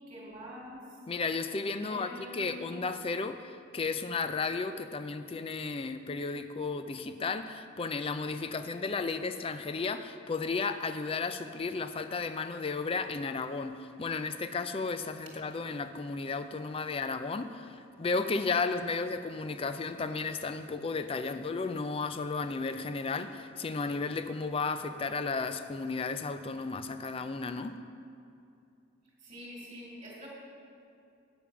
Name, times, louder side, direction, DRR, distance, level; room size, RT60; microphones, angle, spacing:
voice 1, 0.1-0.8 1.8-2.7 29.2-30.3, equal, 25° right, -6 dB, 2.2 m, -45 dB
voice 2, 1.1-27.8, left 4 dB, 25° left, 10 dB, 0.4 m, -34 dB
8.7 x 7.0 x 5.9 m, 2.6 s
head